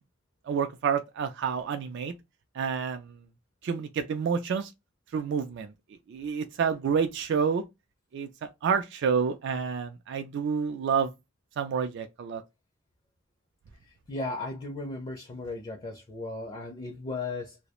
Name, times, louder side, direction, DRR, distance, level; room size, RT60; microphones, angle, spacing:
voice 1, 0.5-2.1 2.6-3.1 3.6-4.7 5.1-5.7 6.1-7.6 8.1-11.1 11.6-12.4, right 6 dB, 60° right, 0.3 m, -29 dB
voice 2, 14.1-17.6, left 2 dB, 25° left, 0.4 m, -36 dB
2.3 x 2.0 x 2.9 m
head